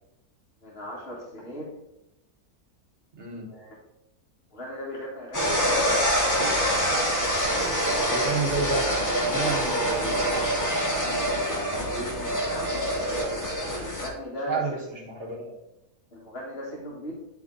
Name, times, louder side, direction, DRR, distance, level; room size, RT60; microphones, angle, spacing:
voice 1, 0.6-1.7 3.5-3.7 4.5-6.0 11.6-12.7 13.8-14.6 16.1-17.1, equal, 40° left, -4 dB, 1.9 m, -38 dB
voice 2, 3.1-3.5 7.8-10.6 14.5-15.6, right 4 dB, 50° right, -1 dB, 1.8 m, -31 dB
sound 1, 5.3-14.1, equal, 15° left, 1.0 m, -25 dB
10.5 x 3.5 x 3.9 m, 0.88 s
omnidirectional pair, 1.5 m